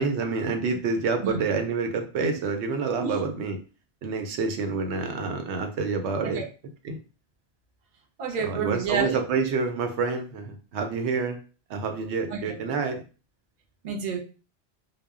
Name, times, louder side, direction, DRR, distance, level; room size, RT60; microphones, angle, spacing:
voice 1, 0.0-3.6 4.0-6.5 6.8-7.0 8.4-11.4 11.7-13.0, right 4 dB, 85° right, 0.9 m, -28 dB
voice 2, 8.2-9.2 12.3-12.5 13.8-14.2, right 6 dB, 50° right, 0.6 m, -29 dB
2.1 x 2.0 x 3.5 m
omnidirectional pair, 1.1 m